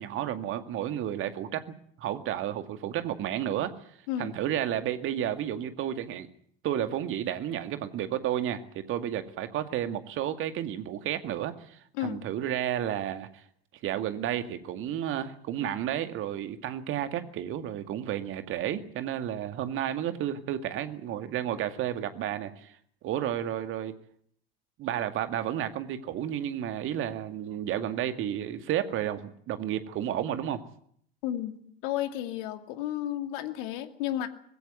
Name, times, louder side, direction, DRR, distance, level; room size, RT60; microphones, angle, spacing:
voice 1, 0.0-1.6 2.0-3.7 4.2-6.3 6.6-13.4 13.8-22.8 23.0-23.9 24.8-30.6, right 11 dB, 45° right, 9 dB, 2.2 m, -32 dB
voice 2, 31.2-34.3, left 12 dB, 60° left, 8 dB, 2.4 m, -32 dB
21.0 x 16.5 x 9.6 m, 0.65 s
figure-of-eight pair, 70°, 29 cm